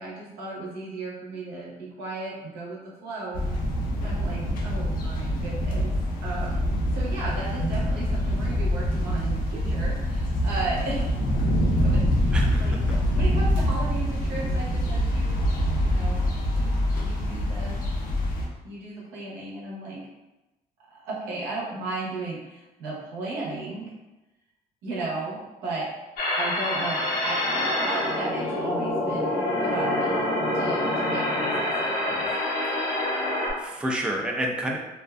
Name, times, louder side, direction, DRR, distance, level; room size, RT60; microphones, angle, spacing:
voice 1, 0.0-3.4 4.0-5.9 6.2-6.6 6.9-11.1 11.8-12.0 12.4-15.5 15.8-17.8 18.6-20.0 20.9-23.9 24.8-25.9 26.4-32.3, right 2 dB, 85° right, -5 dB, 0.8 m, -35 dB
sound 1, 3.3-18.5, equal, 60° left, 0.6 m, -25 dB
voice 2, 12.3-12.8 32.1-32.3 33.5-34.8, right 1 dB, 5° right, 0 dB, 0.4 m, -29 dB
sound 2, 26.2-33.5, left 1 dB, 75° left, 1.0 m, -26 dB
2.5 x 2.2 x 2.3 m, 1.0 s
cardioid pair, 85°, 17 cm